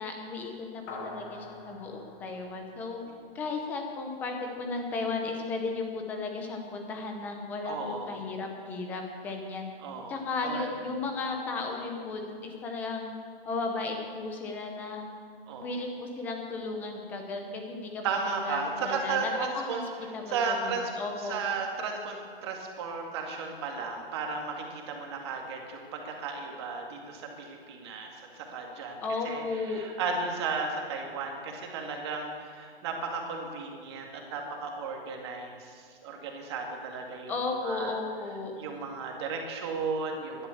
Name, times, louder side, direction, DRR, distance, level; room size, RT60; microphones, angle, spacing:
voice 1, 0.0-3.0 3.3-9.7 10.1-13.1 13.5-15.1 15.6-19.8 20.1-21.4 29.0-29.8 37.3-38.5, left 3 dB, 5° left, 3 dB, 0.7 m, -35 dB
sound 1, 0.9-3.6, left 2 dB, 25° left, 1.8 m, -45 dB
voice 2, 7.6-8.2 9.8-10.7 15.5-15.7 18.0-19.8 20.3-20.9 21.2-37.4 37.6-38.0 38.6-40.5, right 4 dB, 25° right, 1 dB, 2.1 m, -34 dB
17.0 x 12.0 x 7.1 m, 2.2 s
hypercardioid pair, 175°, 30 cm